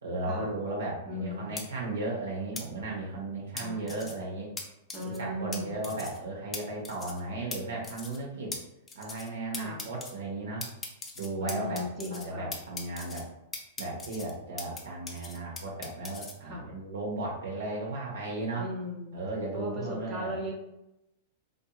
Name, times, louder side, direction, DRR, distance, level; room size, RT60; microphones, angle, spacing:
voice 1, 0.0-4.5 5.0-8.5 8.9-10.7 11.1-13.3 13.8-18.7 19.1-20.3, right 2 dB, 80° right, -2 dB, 0.9 m, -35 dB
voice 2, 1.1-1.6 3.6-4.0 4.9-5.8 9.5-9.8 11.4-12.5 16.4-16.6 18.6-19.2 19.5-20.5, left 1 dB, 30° right, -2 dB, 0.8 m, -37 dB
sound 1, 1.6-1.7 2.6-2.7 3.6-4.1 4.6-4.7 4.9-5.2 5.5-5.6 5.8-6.2 6.5-6.6 6.8-7.2 7.5-7.6 7.8-8.2 8.5-8.6 8.9-9.3 9.5-10.1 10.6-12.3 12.5-13.2 13.5-14.8 15.1-16.3, left 4 dB, 20° left, 0.5 m, -39 dB
2.7 x 2.5 x 2.3 m, 0.87 s
hypercardioid pair, 110°, 0 cm